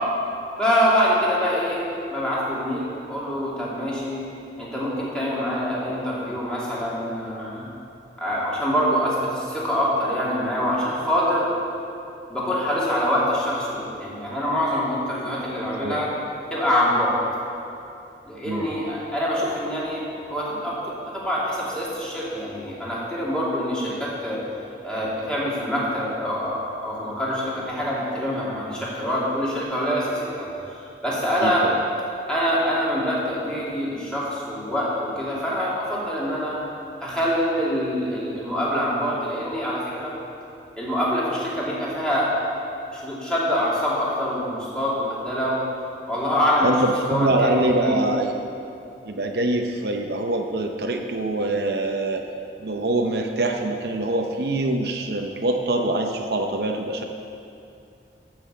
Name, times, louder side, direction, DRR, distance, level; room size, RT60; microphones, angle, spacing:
voice 1, 0.6-1.8 2.1-4.2 4.6-7.7 8.2-11.5 12.3-16.1 16.5-17.1 18.2-20.0 20.3-20.8 21.1-24.4 24.8-31.6 32.3-36.6 37.0-40.1 40.8-42.3 42.9-45.6 46.1-46.7 47.1-48.0, equal, 5° left, -7 dB, 2.6 m, -25 dB
voice 2, 31.4-31.8 46.6-48.3 49.0-52.2 52.6-57.1, right 2 dB, 65° right, 3 dB, 0.7 m, -24 dB
12.5 x 6.1 x 7.4 m, 2.7 s
head